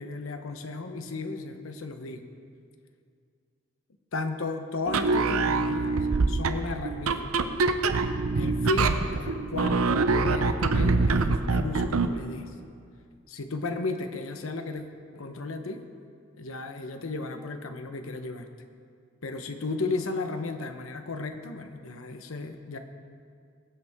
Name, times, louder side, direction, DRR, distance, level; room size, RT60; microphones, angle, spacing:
voice 1, 0.0-2.3 4.1-6.0 6.3-7.5 8.3-12.5 13.3-14.8 15.1-15.9 16.4-18.5 19.2-22.8, left 3 dB, 80° left, 6 dB, 0.9 m, -34 dB
sound 1, 4.9-12.2, right 3 dB, 90° right, 0.6 m, -25 dB
21.5 x 8.1 x 3.6 m, 2.2 s
head